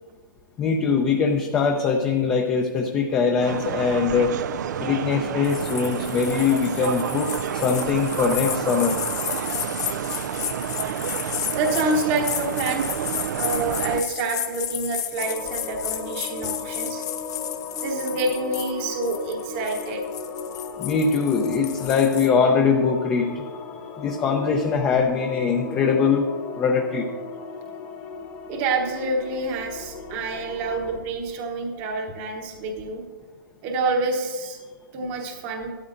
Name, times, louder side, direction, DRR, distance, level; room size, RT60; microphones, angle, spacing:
voice 1, 0.6-4.4 4.8-7.3 7.5-9.0 20.8-23.4 24.0-26.3 26.6-27.1, left 5 dB, 15° left, 2 dB, 0.6 m, -22 dB
sound 1, 3.4-14.0, right 9 dB, 55° right, 0.4 m, -29 dB
sound 2, 5.4-22.3, left 11 dB, 50° left, 0.9 m, -33 dB
voice 2, 11.5-17.0 17.8-20.0 28.5-33.0 33.6-34.6 34.9-35.7, right 3 dB, 30° right, 2 dB, 1.0 m, -27 dB
symphony background, 15.2-31.0, left 4 dB, 35° left, 1.3 m, -37 dB
13.0 x 12.5 x 2.6 m, 1.4 s
hypercardioid pair, 150°, 11 cm